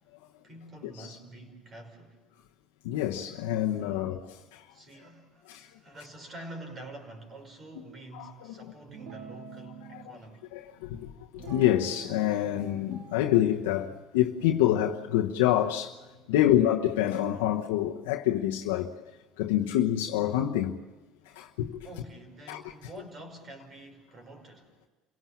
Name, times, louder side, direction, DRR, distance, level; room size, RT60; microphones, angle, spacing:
voice 1, 0.4-2.2 3.8-4.2 4.7-10.5 16.3-16.6 21.3-21.5 21.8-24.7, right 1 dB, 35° right, 5.6 m, -47 dB
voice 2, 2.8-4.2 4.5-4.6 5.5-5.7 9.9-10.0 10.5-16.0 16.3-18.9 19.4-20.8 21.4-21.8 22.5-22.6, left 12 dB, 90° left, 1.0 m, -27 dB
Guitar, 8.9-10.1 11.4-12.3 12.6-13.7 14.3-17.8, right 4 dB, 70° right, 3.7 m, -48 dB
28.0 x 17.5 x 7.3 m
supercardioid pair, 100°, 0 cm